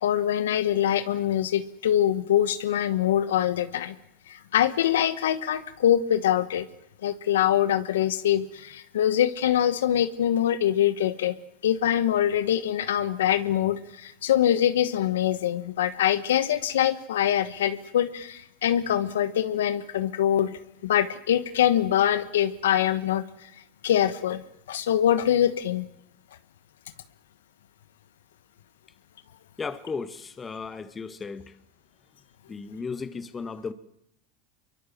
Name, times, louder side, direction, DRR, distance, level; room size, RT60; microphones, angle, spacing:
voice 1, 0.0-3.9 4.3-6.7 7.0-11.3 11.6-23.2 23.8-25.9, left 10 dB, 85° left, 1.2 m, -24 dB
voice 2, 29.6-31.5 32.5-33.7, left 5 dB, 20° left, 1.9 m, -35 dB
23.5 x 23.0 x 7.4 m
hypercardioid pair, 100°, 0 cm